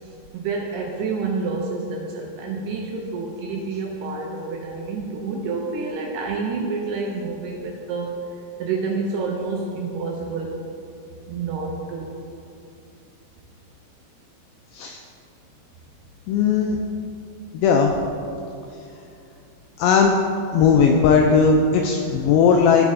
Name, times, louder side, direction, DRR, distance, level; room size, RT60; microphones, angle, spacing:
voice 1, 0.0-8.2 8.6-10.6 11.3-12.1, right 4 dB, 80° right, -1 dB, 2.4 m, -28 dB
voice 2, 16.3-16.8 17.5-18.0 19.8-20.2 20.5-22.9, left 5 dB, 85° left, 2 dB, 2.4 m, -17 dB
15.0 x 5.0 x 3.6 m, 2.5 s
omnidirectional pair, 5.3 m